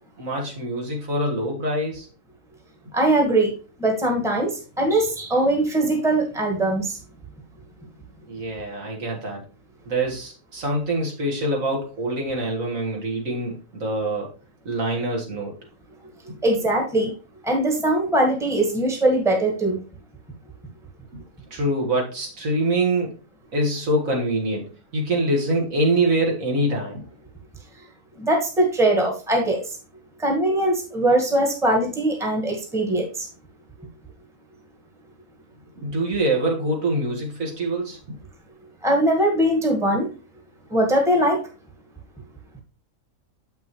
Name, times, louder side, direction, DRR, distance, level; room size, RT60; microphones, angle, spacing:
voice 1, 0.2-2.1 8.3-9.4 9.9-14.3 14.7-15.5 21.5-23.1 23.5-24.6 24.9-27.1 35.8-38.0, right 1 dB, 65° right, 0 dB, 2.2 m, -24 dB
voice 2, 2.9-3.5 3.8-7.0 16.4-17.1 17.4-19.8 28.2-29.6 30.2-33.3 38.8-40.1 40.7-41.4, right 1 dB, ahead, 2 dB, 1.4 m, -21 dB
7.4 x 6.0 x 3.1 m, 0.33 s
omnidirectional pair, 1.5 m